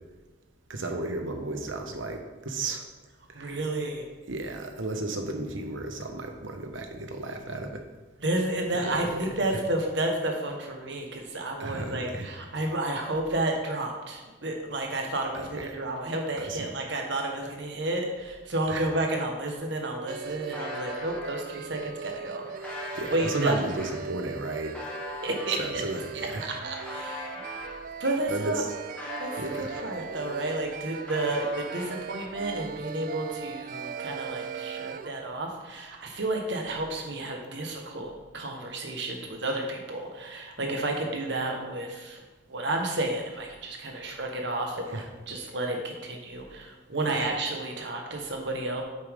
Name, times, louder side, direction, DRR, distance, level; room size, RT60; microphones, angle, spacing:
voice 1, 0.7-2.8 3.3-3.6 4.3-7.8 8.7-9.6 11.6-12.3 15.3-15.6 16.4-16.7 18.7-18.8 22.9-24.8 25.6-26.5 28.3-28.7 29.4-29.7 44.9-45.0, right 2 dB, 85° right, 4 dB, 1.1 m, -33 dB
voice 2, 3.3-4.1 8.2-23.6 25.2-25.8 26.1-27.3 28.0-28.6 29.2-42.2 42.5-48.8, right 2 dB, 65° right, 2 dB, 1.4 m, -31 dB
sound 1, 19.8-21.4 22.0-27.8 28.3-30.2 30.5-32.3, left 1 dB, 10° left, 1.7 m, -42 dB
sound 2, 20.1-35.1, right 6 dB, 45° right, 0.3 m, -39 dB
8.8 x 6.8 x 3.7 m, 1.2 s
head